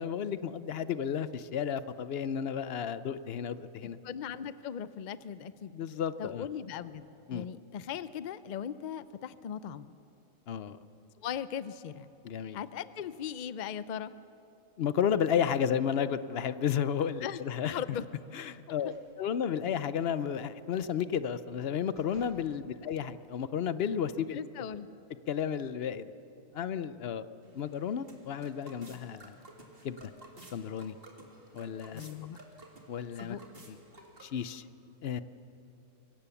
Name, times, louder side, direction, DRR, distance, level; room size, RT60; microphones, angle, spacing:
voice 1, 0.0-4.0 5.7-6.5 7.3-7.5 10.5-10.8 12.2-12.6 14.8-17.8 18.3-24.4 25.3-26.1 26.5-27.3 27.5-29.4 29.8-30.1 30.5-31.0 31.5-32.1 32.9-33.4 33.7-33.8 34.2-34.6 35.0-35.2, left 8 dB, 55° left, 14 dB, 0.7 m, -32 dB
voice 2, 4.0-5.7 6.2-9.9 11.2-12.1 12.5-14.1 17.2-17.4 17.7-18.1 18.8-18.9 24.3-24.9 31.9-32.4 33.2-33.4, left 9 dB, 75° left, 15 dB, 0.4 m, -39 dB
sound 1, 17.1-17.7 18.8-19.1 19.6-19.7 21.3-22.5 23.1-23.2, right 1 dB, 80° right, 3.9 m, -60 dB
sound 2, 27.4-34.6, right 1 dB, 40° right, 2.3 m, -54 dB
24.5 x 17.0 x 7.1 m, 2.9 s
omnidirectional pair, 1.5 m